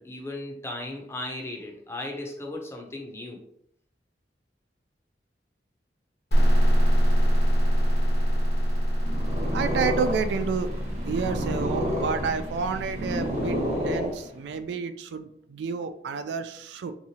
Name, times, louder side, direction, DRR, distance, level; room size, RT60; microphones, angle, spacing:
voice 1, 0.0-3.4, left 1 dB, 15° left, 1 dB, 0.6 m, -36 dB
sound 1, 6.3-13.8, equal, 70° left, 0.9 m, -24 dB
Purr, 8.9-14.6, equal, 40° right, 0.9 m, -30 dB
voice 2, 9.5-10.7 11.0-13.6 13.8-16.9, right 5 dB, 75° right, 10 dB, 0.3 m, -30 dB
3.5 x 3.0 x 2.7 m, 0.70 s
head